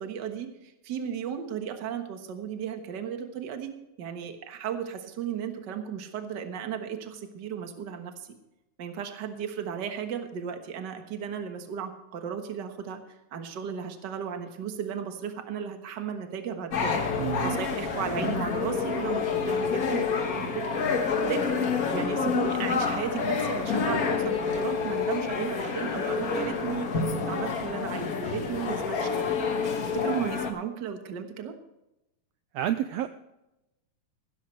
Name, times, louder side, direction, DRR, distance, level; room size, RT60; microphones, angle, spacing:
voice 1, 0.0-8.3 8.8-13.0 13.3-17.0 17.4-29.4 29.9-31.5, right 8 dB, 50° right, 6 dB, 1.5 m, -35 dB
sound 1, 16.7-30.5, left 5 dB, 50° left, 1.1 m, -28 dB
voice 2, 17.2-17.6 32.5-33.1, right 12 dB, 80° right, 10 dB, 1.6 m, -29 dB
15.5 x 13.0 x 3.2 m, 0.92 s
omnidirectional pair, 3.4 m